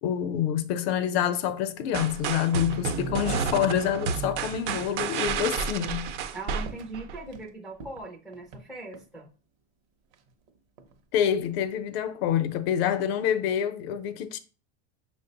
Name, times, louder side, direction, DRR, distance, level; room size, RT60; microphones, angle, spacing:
voice 1, 0.0-6.1 11.1-14.4, left 9 dB, 65° left, 0.6 m, -27 dB
sound 1, 1.9-2.2 2.5-4.5 4.8-5.0 5.4-5.7 6.1-6.4 6.6-7.5 7.8-9.1 10.1-11.0 11.3-11.8, right 4 dB, 55° right, 0.7 m, -45 dB
sound 2, 1.9-7.2, right 6 dB, 85° right, 0.8 m, -31 dB
voice 2, 6.3-9.3, right 2 dB, ahead, 0.4 m, -40 dB
5.8 x 2.1 x 3.8 m
supercardioid pair, 165°, 34 cm